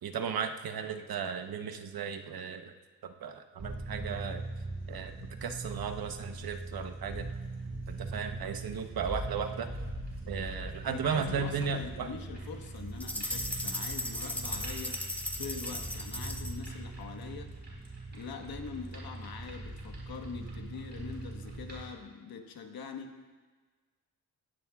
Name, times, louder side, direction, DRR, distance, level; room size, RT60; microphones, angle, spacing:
voice 1, 0.0-2.7 3.0-4.4 4.9-7.3 7.9-9.7 10.3-12.1, right 6 dB, 80° right, 7 dB, 1.0 m, -35 dB
sound 1, 3.6-21.9, right 2 dB, 30° right, 4.2 m, -41 dB
voice 2, 10.9-15.0 15.4-17.5 18.1-23.2, left 5 dB, 90° left, 4 dB, 1.5 m, -43 dB
sound 2, 13.0-16.7, left 1 dB, 5° left, 0.7 m, -37 dB
18.5 x 16.5 x 2.4 m, 1.4 s
wide cardioid pair, 150°, 35 cm